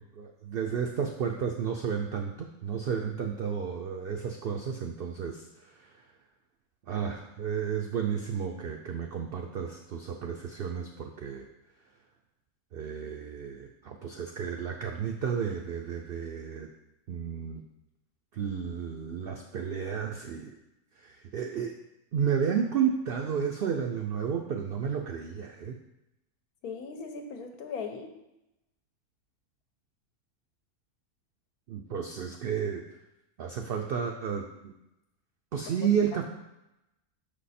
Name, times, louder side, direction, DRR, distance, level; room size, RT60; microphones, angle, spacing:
voice 1, 0.2-5.4 6.9-11.5 12.7-16.7 17.1-17.6 18.3-20.5 21.0-21.7 22.1-25.8 31.7-32.9 33.4-34.7 35.5-36.2, right 7 dB, 90° right, 3 dB, 0.5 m, -32 dB
voice 2, 26.6-28.1 35.6-35.9, left 5 dB, 80° left, 4 dB, 1.3 m, -39 dB
5.6 x 5.3 x 4.2 m, 0.92 s
omnidirectional pair, 1.6 m